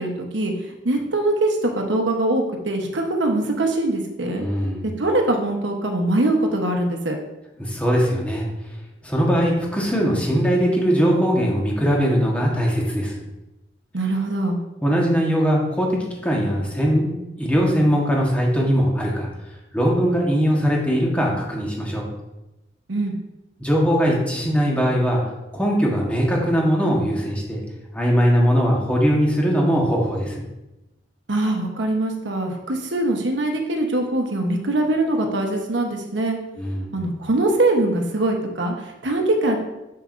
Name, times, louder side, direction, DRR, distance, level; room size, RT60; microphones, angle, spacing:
voice 1, 0.0-4.4 4.8-7.2 13.9-14.6 22.9-23.1 31.3-36.4 36.9-39.6, right 2 dB, 90° right, 3 dB, 1.1 m, -22 dB
voice 2, 4.4-4.9 7.6-8.4 9.0-13.1 14.8-17.1 17.4-19.3 19.7-22.1 23.6-25.2 25.5-27.6 27.9-30.3 36.6-36.9, equal, 5° left, -2 dB, 1.3 m, -20 dB
6.8 x 6.7 x 2.6 m, 0.97 s
head